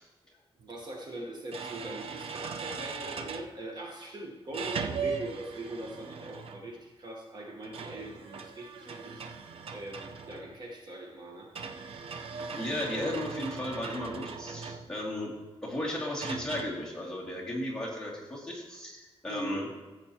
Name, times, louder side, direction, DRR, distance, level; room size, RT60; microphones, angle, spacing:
voice 1, 0.6-9.2 9.7-11.5 14.6-14.8 19.3-19.7, right 1 dB, 40° right, 0 dB, 1.1 m, -42 dB
sound 1, 0.6-0.7 1.5-3.5 4.5-6.8 7.6-10.6 11.5-15.1 16.2-16.6, right 5 dB, 60° right, 0.6 m, -39 dB
voice 2, 12.5-15.3 15.6-19.7, left 1 dB, 5° left, -6 dB, 2.4 m, -35 dB
15.5 x 7.8 x 2.9 m, 1.2 s
wide cardioid pair, 170°, 11 cm